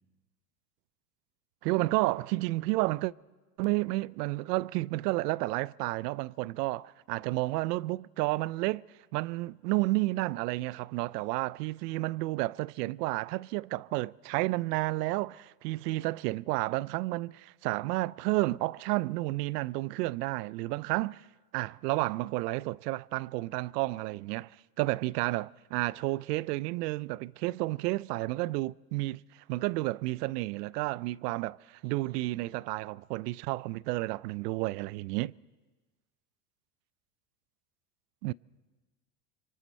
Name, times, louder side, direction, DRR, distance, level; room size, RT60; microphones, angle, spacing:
voice 1, 1.6-3.1 3.6-8.8 9.1-21.3 21.5-24.5 24.8-29.2 29.5-35.3 38.2-38.3, right 20 dB, 80° right, 0.5 m, -31 dB
26.0 x 24.5 x 4.3 m
supercardioid pair, 120°, 48 cm